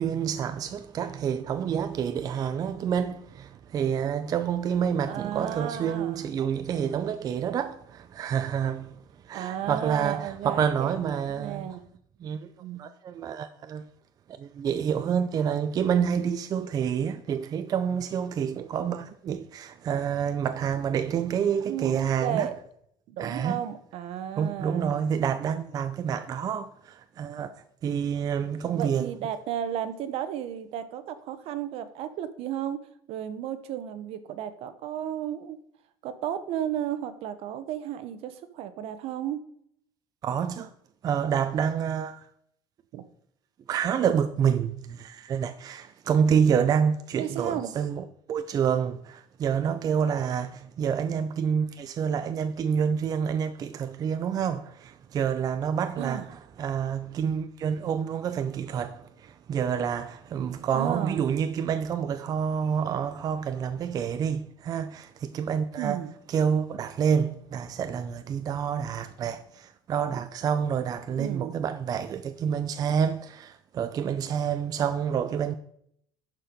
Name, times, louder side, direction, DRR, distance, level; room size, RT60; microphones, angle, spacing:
voice 1, 0.0-9.0 9.2-11.7 12.2-12.5 12.8-13.8 14.4-22.5 23.2-23.6 24.4-27.5 27.8-29.1 40.2-40.7 41.0-42.2 43.7-56.3 56.6-66.0 66.3-75.5, right 7 dB, 35° right, 0.4 m, -28 dB
voice 2, 5.1-6.3 9.3-10.9 11.3-11.8 12.6-12.8 21.7-22.5 23.1-24.9 28.7-32.8 33.1-35.6 36.0-39.4 42.9-43.1 47.2-47.7 56.0-56.3 60.7-61.2 65.8-66.1 71.2-71.5, right 10 dB, 65° right, 0.9 m, -33 dB
11.5 x 4.6 x 5.2 m
cardioid pair, 145°, 11 cm